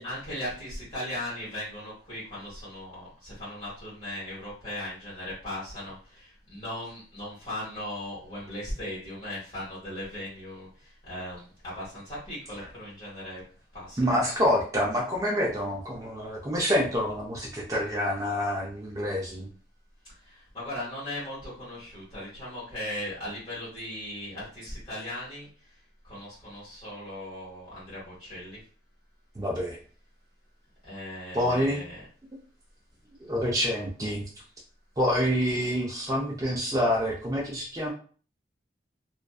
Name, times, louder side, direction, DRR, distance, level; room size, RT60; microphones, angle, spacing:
voice 1, 0.0-13.4 13.7-14.2 20.0-28.6 30.8-32.0 35.5-35.6, left 1 dB, 25° left, -10 dB, 1.1 m, -38 dB
voice 2, 14.0-19.5 29.4-29.8 31.3-31.8 33.2-34.2 35.0-37.9, equal, 20° right, -2 dB, 0.4 m, -27 dB
2.5 x 2.3 x 2.3 m, 0.42 s
head